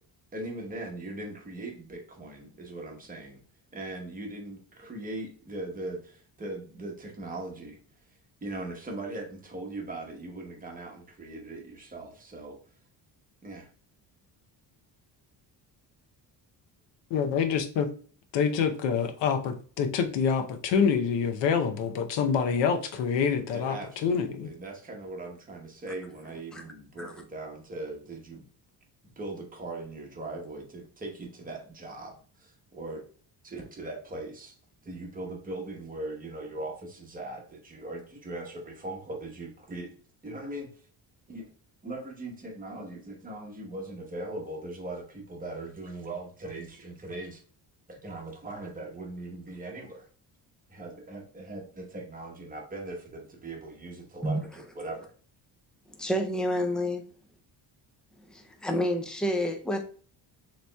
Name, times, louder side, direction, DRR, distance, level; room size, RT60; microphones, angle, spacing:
voice 1, 0.3-3.4 3.7-7.8 8.4-12.6 13.4-13.7 23.5-28.5 29.2-33.0 33.4-34.5 34.8-39.9 40.2-40.7 41.3-41.4 41.8-47.4 47.9-50.1 50.7-55.1, right 2 dB, 20° right, 0.9 m, -40 dB
voice 2, 17.1-17.9 18.3-24.5, left 6 dB, 90° left, 0.8 m, -26 dB
voice 3, 55.9-57.0 58.3-59.8, equal, ahead, 0.4 m, -29 dB
6.8 x 3.1 x 2.2 m
cardioid pair, 155°, 42 cm